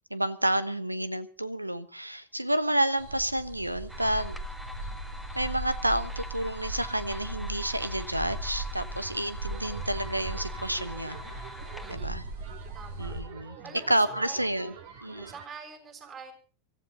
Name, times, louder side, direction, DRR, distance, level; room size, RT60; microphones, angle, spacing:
voice 1, 0.1-4.4 5.3-11.4 11.9-12.2 13.0-13.6 13.9-14.7 15.0-15.3, right 1 dB, 85° right, 1.1 m, -30 dB
sound 1, 3.0-13.2, right 2 dB, 70° right, 6.6 m, -38 dB
sound 2, 3.9-12.0, left 1 dB, ahead, 1.6 m, -45 dB
sound 3, 9.4-15.5, right 7 dB, 50° right, 3.0 m, -47 dB
voice 2, 11.8-12.2 12.7-14.5 15.2-16.3, right 5 dB, 30° right, 6.4 m, -46 dB
24.5 x 15.0 x 4.0 m
figure-of-eight pair, 90°, 0 cm